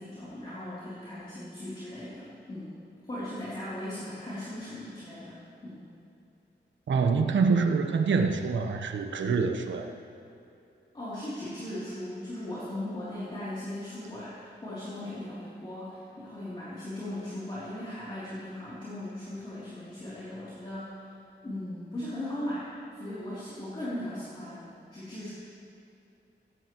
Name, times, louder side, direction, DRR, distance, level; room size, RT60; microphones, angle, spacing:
voice 1, 0.0-2.7 3.0-5.8 10.9-21.1 21.4-25.3, left 1 dB, 30° left, -10 dB, 3.1 m, -38 dB
voice 2, 6.9-9.9, right 5 dB, 80° right, 6 dB, 1.0 m, -25 dB
16.5 x 16.0 x 3.1 m, 2.7 s
wide cardioid pair, 170°, 19 cm